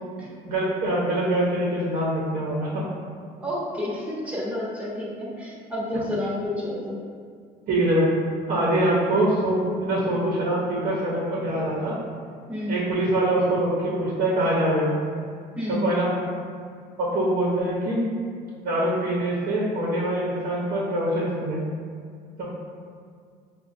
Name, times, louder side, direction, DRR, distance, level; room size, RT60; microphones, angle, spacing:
voice 1, 0.4-2.8 7.7-8.1 8.5-12.0 12.7-15.0 15.7-16.1 17.0-18.0 18.6-21.7 22.4-22.5, right 1 dB, 55° right, -5 dB, 0.8 m, -24 dB
voice 2, 3.4-7.0 12.5-12.8 15.6-15.9, left 1 dB, 10° right, -7 dB, 1.0 m, -30 dB
5.1 x 2.2 x 2.5 m, 2.1 s
cardioid pair, 110°, 17 cm